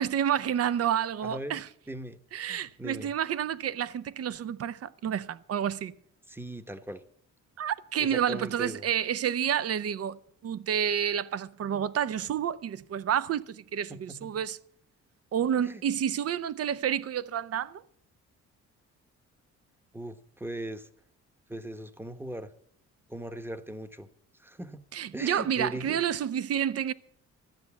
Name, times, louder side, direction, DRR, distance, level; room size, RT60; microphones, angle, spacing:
voice 1, 0.0-1.7 2.3-5.9 7.6-10.2 10.4-14.6 15.3-17.8 24.9-26.9, right 9 dB, 55° right, 0.7 m, -29 dB
voice 2, 1.2-1.6 1.9-2.2 2.5-3.1 6.3-7.0 8.0-8.9 13.9-14.2 15.6-15.8 19.9-20.9 21.5-22.5 23.1-24.1 24.4-24.8 25.1-26.0, right 1 dB, 5° right, 1.0 m, -39 dB
13.0 x 7.8 x 7.1 m
cardioid pair, 90°, 30 cm